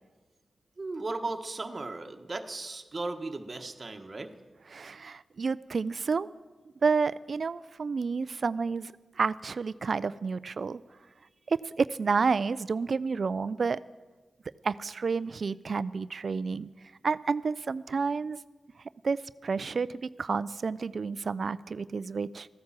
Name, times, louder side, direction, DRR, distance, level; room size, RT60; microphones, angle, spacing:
voice 1, 0.8-4.3, right 3 dB, 45° right, 5 dB, 1.2 m, -36 dB
voice 2, 4.7-6.3 6.8-10.8 11.5-13.8 14.6-16.7 17.0-18.4 19.0-22.5, right 5 dB, 65° right, 18 dB, 0.3 m, -30 dB
15.0 x 9.5 x 7.4 m, 1.3 s
cardioid pair, 50°, 0 cm